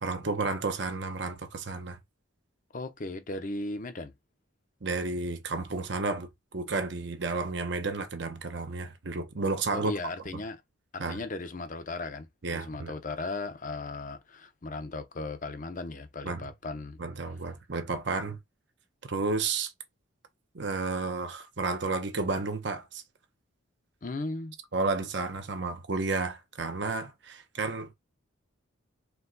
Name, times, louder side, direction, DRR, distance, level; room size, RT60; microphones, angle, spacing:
voice 1, 0.0-2.0 4.8-9.9 11.0-11.2 12.4-12.9 16.2-16.4 17.0-18.4 19.0-19.7 20.5-23.0 24.7-27.9, right 3 dB, 60° right, 0.8 m, -32 dB
voice 2, 2.7-4.1 9.7-10.6 10.9-17.0 24.0-24.5, left 2 dB, 40° left, 0.7 m, -37 dB
4.5 x 2.3 x 3.9 m
head